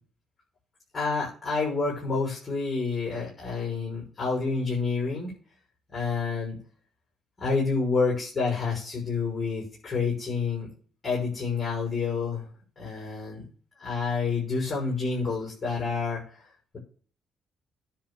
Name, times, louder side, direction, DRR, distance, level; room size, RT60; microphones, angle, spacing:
voice 1, 0.9-5.3 5.9-6.5 7.4-10.7 11.0-12.5 12.8-13.4 13.8-16.2, left 4 dB, 35° left, -4 dB, 6.3 m, -28 dB
10.5 x 5.0 x 6.8 m, 0.42 s
cardioid pair, 80°, 0 cm